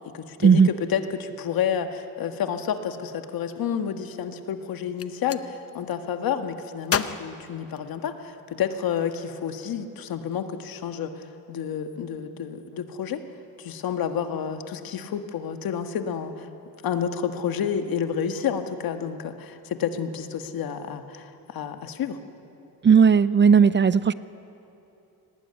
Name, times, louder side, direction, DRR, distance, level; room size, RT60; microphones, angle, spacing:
voice 1, 0.1-13.2 13.6-16.5 16.8-22.2, left 8 dB, 70° left, 7 dB, 1.7 m, -30 dB
Gunshot gunfire, 4.8-5.4 6.8-8.3, left 7 dB, 40° left, 0.9 m, -31 dB
voice 2, 22.8-24.1, right 6 dB, 30° right, 16 dB, 0.5 m, -16 dB
21.5 x 19.0 x 9.8 m, 2.8 s
cardioid pair, 100°, 36 cm